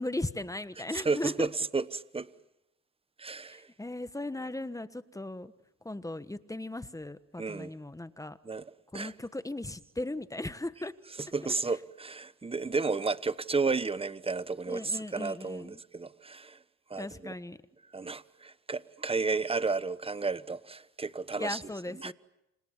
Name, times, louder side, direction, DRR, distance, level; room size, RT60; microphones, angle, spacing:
voice 1, 0.0-1.5 3.4-5.5 5.8-8.4 8.9-10.9 14.7-15.8 17.0-17.6 21.4-22.1, left 2 dB, 10° left, 1.3 m, -37 dB
voice 2, 0.9-2.3 3.2-3.7 7.4-7.7 8.4-8.6 8.9-9.1 11.2-16.6 16.9-17.3 17.9-22.1, right 4 dB, 20° right, 1.1 m, -32 dB
30.0 x 26.5 x 7.4 m
cardioid pair, 90°, 30 cm